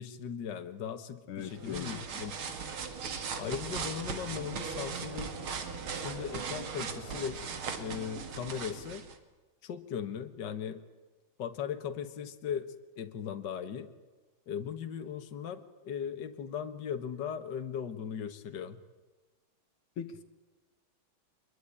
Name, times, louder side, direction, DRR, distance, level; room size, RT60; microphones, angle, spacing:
voice 1, 0.0-2.4 3.4-5.4 5.9-7.4 7.7-9.1 9.6-10.8 11.4-13.9 14.5-18.8, left 8 dB, 55° left, 8 dB, 2.0 m, -38 dB
voice 2, 1.3-2.0 20.0-20.2, left 8 dB, 80° left, 9 dB, 2.1 m, -40 dB
sound 1, 1.4-9.2, right 5 dB, 75° right, 2.7 m, -38 dB
25.0 x 22.0 x 9.9 m, 1.2 s
omnidirectional pair, 2.4 m